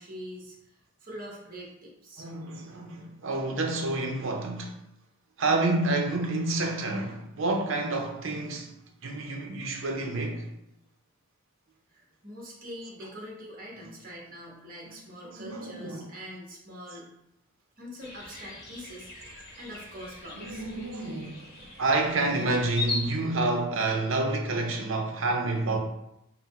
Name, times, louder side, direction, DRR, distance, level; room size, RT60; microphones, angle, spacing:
voice 1, 0.0-2.3 11.9-17.1 17.8-20.6, equal, 40° right, 1.1 m, -44 dB
voice 2, 2.2-4.8 5.4-8.7 9.0-10.5 13.7-13.9 15.2-16.1 20.4-21.4 21.8-25.8, right 2 dB, 65° right, 0.6 m, -29 dB
sound 1, 18.0-23.1, left 3 dB, 45° left, 0.9 m, -39 dB
4.0 x 2.0 x 4.2 m
head